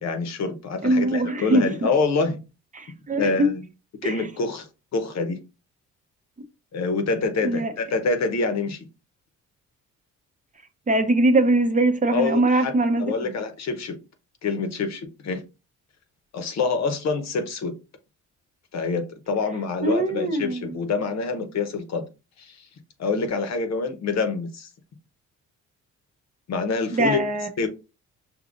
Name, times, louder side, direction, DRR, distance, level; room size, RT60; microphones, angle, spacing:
voice 1, 0.0-2.4 3.2-3.7 4.0-5.4 6.7-8.9 12.1-12.7 13.0-14.0 14.4-15.4 16.3-17.7 18.7-22.1 22.4-22.7 23.0-24.7 26.5-27.2 27.6-27.7, left 4 dB, 60° left, 0.9 m, -26 dB
voice 2, 0.8-1.7 2.7-3.5 4.0-4.2 7.4-7.7 10.9-13.1 19.8-20.7 26.9-27.5, right 2 dB, 25° right, 0.7 m, -22 dB
5.3 x 2.8 x 2.5 m
cardioid pair, 90°, 30 cm